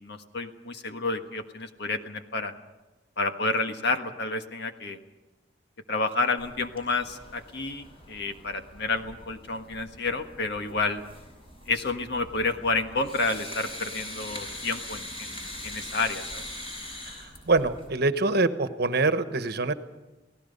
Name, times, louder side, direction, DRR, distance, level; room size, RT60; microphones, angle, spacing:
voice 1, 0.0-2.5 3.2-5.0 5.9-11.0 11.7-16.5, left 3 dB, 65° left, 6 dB, 1.5 m, -30 dB
sound 1, 6.4-17.9, left 1 dB, 30° left, 6.7 m, -42 dB
voice 2, 17.4-19.7, right 3 dB, 60° right, 10 dB, 1.2 m, -24 dB
29.0 x 18.0 x 5.4 m, 1.1 s
head